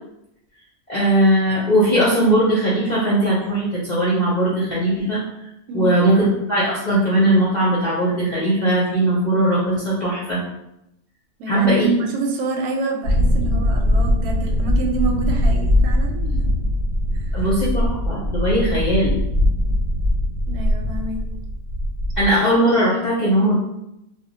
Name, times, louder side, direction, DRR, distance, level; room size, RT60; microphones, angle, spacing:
voice 1, 0.9-5.2 5.7-10.4 11.5-11.9 17.3-19.1 22.2-23.6, right 1 dB, 50° left, -7 dB, 0.5 m, -19 dB
voice 2, 5.7-6.0 11.4-16.5 17.1-17.5 20.5-21.3, right 3 dB, 90° right, 2 dB, 1.0 m, -27 dB
sound 1, 13.0-22.3, left 1 dB, 60° right, 0.9 m, -21 dB
2.4 x 2.1 x 3.8 m, 0.85 s
omnidirectional pair, 1.5 m